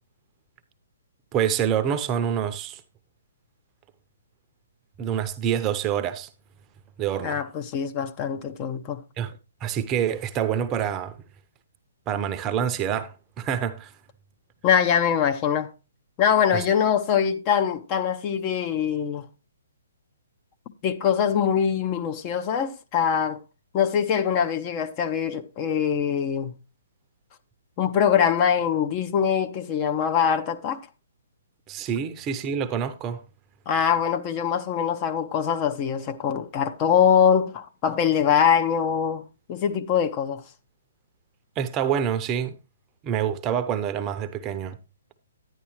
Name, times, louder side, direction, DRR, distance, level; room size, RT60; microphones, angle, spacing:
voice 1, 1.3-2.8 5.0-6.3 7.0-7.4 9.2-9.3 9.6-11.2 12.1-13.9 16.5-16.7 31.7-33.2 41.6-42.6 43.0-44.8, right 9 dB, 25° right, 0.7 m, -26 dB
voice 2, 7.2-9.0 14.6-15.7 16.2-19.3 20.8-23.4 23.7-26.5 27.8-30.8 33.7-39.2 39.5-40.4, left 8 dB, 30° left, 0.7 m, -23 dB
10.0 x 10.0 x 3.1 m
hypercardioid pair, 135°, 0 cm